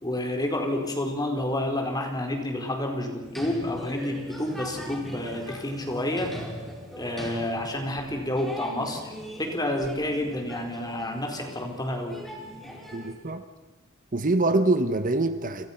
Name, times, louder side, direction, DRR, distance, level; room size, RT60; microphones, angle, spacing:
voice 1, 0.0-6.3 6.9-9.1 9.4-12.2, left 1 dB, 20° left, 4.4 m, -29 dB
sound 1, 3.2-13.1, equal, ahead, 5.1 m, -41 dB
voice 2, 12.9-13.4 14.1-15.7, right 2 dB, 40° right, 1.1 m, -24 dB
29.0 x 28.0 x 5.9 m
head